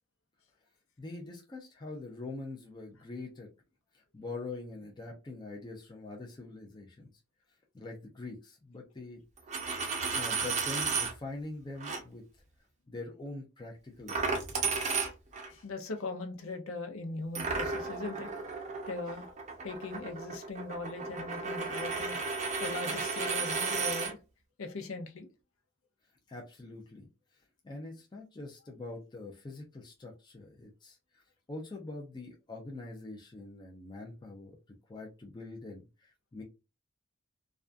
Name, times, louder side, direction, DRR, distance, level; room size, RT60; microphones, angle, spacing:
voice 1, 1.0-3.5 4.1-7.1 7.7-9.2 10.1-12.2 12.9-14.7 26.3-27.1 27.6-31.2 31.5-34.6 34.9-36.4, left 2 dB, 20° left, -1 dB, 0.4 m, -44 dB
Coin (dropping), 9.4-11.1 11.8-12.0 14.1-15.5 17.4-24.1, right 4 dB, 35° right, 0.5 m, -33 dB
voice 2, 15.5-18.3 18.9-19.3 19.6-22.2 22.6-24.2 24.6-25.3, left 3 dB, 70° left, 5 dB, 0.6 m, -39 dB
2.4 x 2.2 x 2.4 m, 0.29 s
head